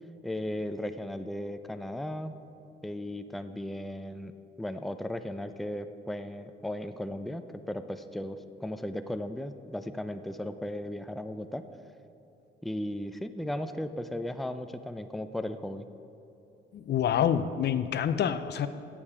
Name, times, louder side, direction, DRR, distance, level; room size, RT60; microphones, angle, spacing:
voice 1, 0.2-2.4 2.8-4.3 4.6-11.6 12.6-15.9, left 1 dB, ahead, 9 dB, 0.5 m, -36 dB
voice 2, 16.7-18.7, left 9 dB, 60° left, 12 dB, 0.6 m, -27 dB
15.5 x 7.4 x 4.9 m, 2.9 s
cardioid pair, 90°, 20 cm